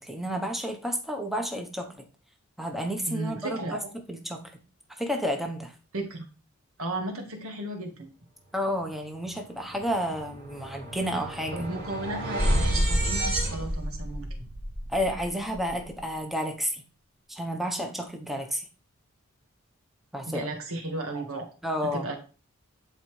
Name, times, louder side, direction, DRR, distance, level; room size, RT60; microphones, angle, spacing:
voice 1, 0.0-2.0 2.6-3.6 3.9-4.4 5.0-5.7 8.5-11.7 14.9-16.8 17.3-18.7 20.1-20.5 21.6-22.1, equal, ahead, 3 dB, 0.9 m, -31 dB
voice 2, 3.1-3.8 5.9-6.3 6.8-8.1 11.5-14.4 20.3-21.5 21.9-22.1, right 2 dB, 85° right, 3 dB, 1.6 m, -34 dB
sound 1, 9.2-9.4 9.7-15.9, right 1 dB, 45° right, 2.9 m, -30 dB
11.0 x 4.1 x 3.2 m, 0.36 s
head